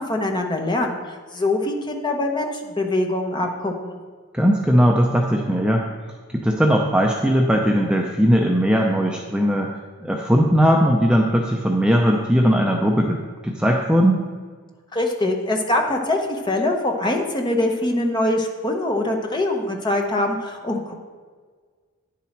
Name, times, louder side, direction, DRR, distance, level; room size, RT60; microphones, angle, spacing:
voice 1, 0.0-4.0 14.9-20.9, left 1 dB, 20° left, 2 dB, 0.9 m, -23 dB
voice 2, 4.3-5.9 6.3-14.2, equal, 5° right, 0 dB, 0.5 m, -19 dB
10.5 x 7.3 x 4.4 m, 1.5 s
head